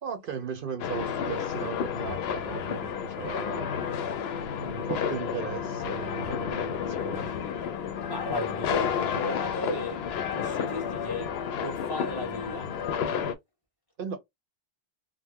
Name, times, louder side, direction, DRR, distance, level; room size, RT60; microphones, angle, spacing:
voice 1, 0.0-3.7 4.6-7.3 14.0-14.2, right 7 dB, 60° right, 0.7 m, -37 dB
sound 1, 0.8-13.3, left 7 dB, 75° left, 0.8 m, -31 dB
voice 2, 8.1-12.9, left 1 dB, 20° left, 1.4 m, -36 dB
3.8 x 2.0 x 2.8 m
omnidirectional pair, 1.1 m